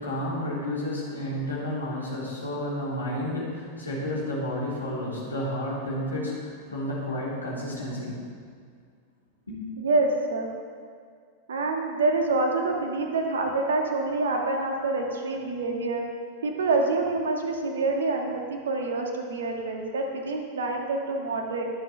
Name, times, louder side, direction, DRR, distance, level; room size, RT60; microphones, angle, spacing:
voice 1, 0.0-8.2 9.5-9.6, left 1 dB, 80° left, -6 dB, 3.5 m, -31 dB
voice 2, 9.8-10.5 11.5-16.0 16.4-21.6, right 3 dB, 65° right, 2 dB, 1.6 m, -26 dB
21.5 x 7.4 x 3.3 m, 2.1 s
figure-of-eight pair, 90°, 0 cm